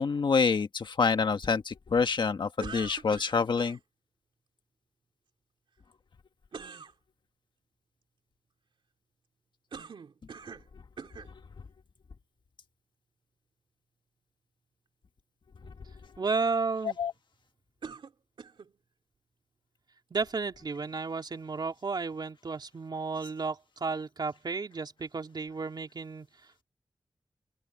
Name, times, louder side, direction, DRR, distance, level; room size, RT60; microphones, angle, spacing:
voice 1, 0.0-3.8 17.0-17.1, left 5 dB, 70° left, 1.6 m, -27 dB
sound 1, 2.6-3.8 6.5-6.9 9.7-10.7 11.0-11.3 12.1-12.2 17.8-18.7, right 5 dB, 85° right, 2.4 m, -44 dB
voice 2, 16.2-17.0 20.1-26.3, right 4 dB, 60° right, 3.1 m, -33 dB
open air
wide cardioid pair, 90°, 8 cm